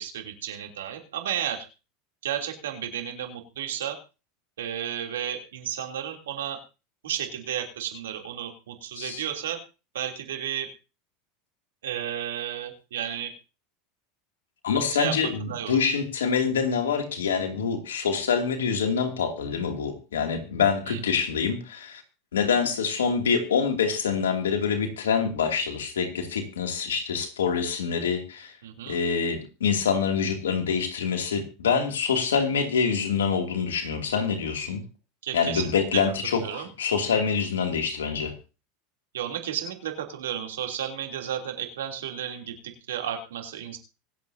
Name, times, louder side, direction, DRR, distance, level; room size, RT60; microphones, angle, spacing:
voice 1, 0.0-1.6 2.2-4.0 4.6-6.6 7.0-9.6 9.9-10.7 11.8-13.3 14.9-15.8 20.9-21.0 28.6-29.0 35.2-36.0 36.4-36.7 39.1-42.5 42.9-43.8, right 10 dB, 80° right, 3 dB, 3.2 m, -32 dB
voice 2, 14.6-22.0 22.3-28.5 28.9-34.8 35.3-38.3, left 6 dB, 85° left, 4 dB, 2.7 m, -26 dB
25.0 x 8.4 x 2.8 m, 0.32 s
hypercardioid pair, 95°, 0 cm